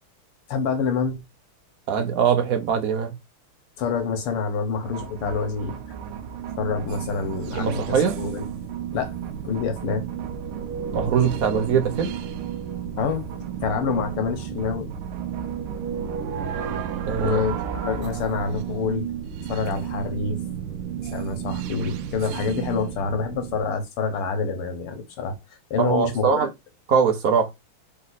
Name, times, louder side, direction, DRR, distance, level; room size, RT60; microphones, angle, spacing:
voice 1, 0.5-1.2 3.8-5.8 6.6-8.4 8.9-9.2 9.4-10.1 13.0-13.3 13.6-14.9 17.2-19.1 19.5-20.4 21.1-25.4 25.7-26.5, left 5 dB, 85° left, 2.0 m, -27 dB
voice 2, 1.9-3.1 7.5-8.1 10.9-12.1 17.1-17.4 25.8-26.5 26.9-27.5, right 7 dB, 60° right, 0.9 m, -22 dB
sound 1, 4.7-23.6, right 8 dB, 80° right, 1.5 m, -32 dB
4.1 x 3.2 x 4.0 m
omnidirectional pair, 2.4 m